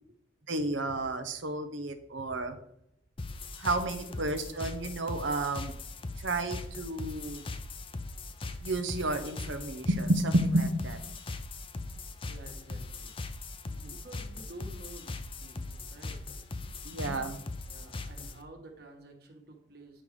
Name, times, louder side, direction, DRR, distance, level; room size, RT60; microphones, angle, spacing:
voice 1, 0.5-2.6 3.6-5.7 6.2-7.5 8.6-11.0 13.7-13.9 16.8-17.4, right 1 dB, 85° right, 7 dB, 0.9 m, -31 dB
sound 1, 3.2-18.4, left 3 dB, 30° left, 0.5 m, -40 dB
voice 2, 4.0-4.4 12.3-13.1 13.5-16.2 17.7-20.0, right 2 dB, 55° right, 2 dB, 1.6 m, -51 dB
8.8 x 5.4 x 4.9 m, 0.74 s
head